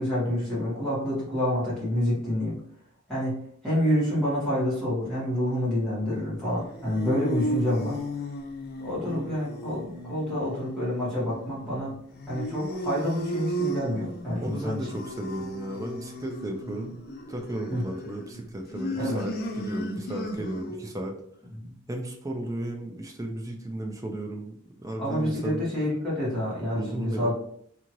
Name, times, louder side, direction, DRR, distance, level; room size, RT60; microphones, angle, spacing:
voice 1, 0.0-2.5 3.1-3.4 3.6-8.0 8.8-11.9 12.3-14.8 17.7-17.8 19.0-19.2 21.5-21.7 25.0-27.3, equal, 5° left, -10 dB, 1.3 m, -28 dB
sound 1, 6.4-20.9, right 1 dB, 45° left, 0.4 m, -35 dB
voice 2, 14.4-17.0 17.3-21.2 21.9-24.6 24.8-25.7 26.7-27.3, right 1 dB, 15° right, 3 dB, 0.4 m, -34 dB
2.8 x 2.5 x 2.9 m, 0.65 s
head